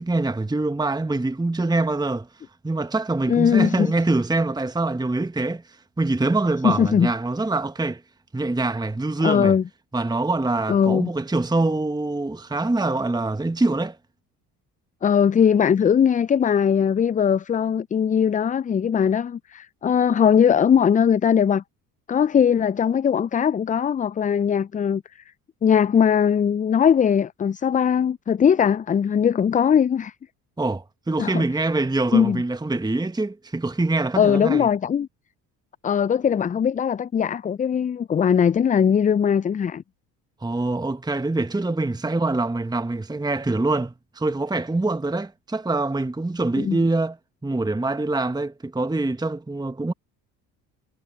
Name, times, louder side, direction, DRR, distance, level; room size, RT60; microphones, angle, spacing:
voice 1, 0.0-2.3 2.6-5.6 6.0-8.0 8.3-9.6 9.9-14.0 30.6-34.7 40.4-47.2 47.4-49.9, right 2 dB, 10° right, 1.4 m, -24 dB
voice 2, 3.3-3.9 6.6-7.1 9.2-9.6 10.7-11.1 15.0-21.6 22.1-25.0 25.6-30.1 31.2-31.4 32.1-32.4 34.2-35.1 35.8-39.8 46.6-46.8, left 7 dB, 20° left, 0.4 m, -20 dB
hypercardioid pair, 60°, 48 cm